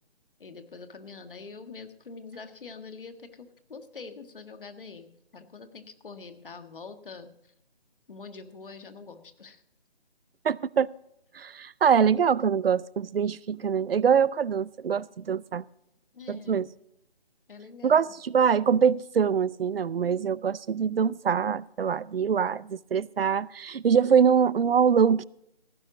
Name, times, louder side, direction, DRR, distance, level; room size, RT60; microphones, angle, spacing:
voice 1, 0.4-7.5 8.1-9.6 16.1-16.7 17.5-18.1, left 4 dB, 55° left, 1.6 m, -45 dB
voice 2, 10.4-10.9 11.3-15.6 16.3-16.7 17.8-25.3, right 7 dB, 65° right, 0.5 m, -24 dB
16.5 x 9.9 x 3.9 m
figure-of-eight pair, 155°, 31 cm